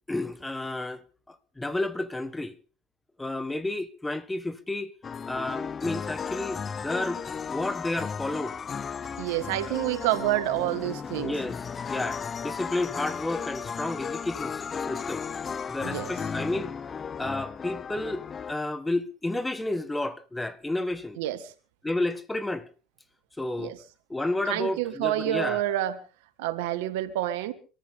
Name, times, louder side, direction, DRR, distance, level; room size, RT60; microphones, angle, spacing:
voice 1, 0.1-2.5 3.2-4.9 5.3-7.2 7.5-8.6 11.2-15.3 15.7-16.7 17.2-21.2 21.8-22.7 23.4-23.7 24.1-25.7, left 2 dB, 10° left, 1.3 m, -31 dB
sound 1, 5.0-18.5, left 6 dB, 30° left, 0.7 m, -35 dB
voice 2, 9.2-11.3 15.8-16.1 21.2-21.5 23.6-23.8 24.5-26.0 26.4-27.5, right 14 dB, 75° right, 1.6 m, -28 dB
25.0 x 14.0 x 3.6 m
hypercardioid pair, 90°, 0 cm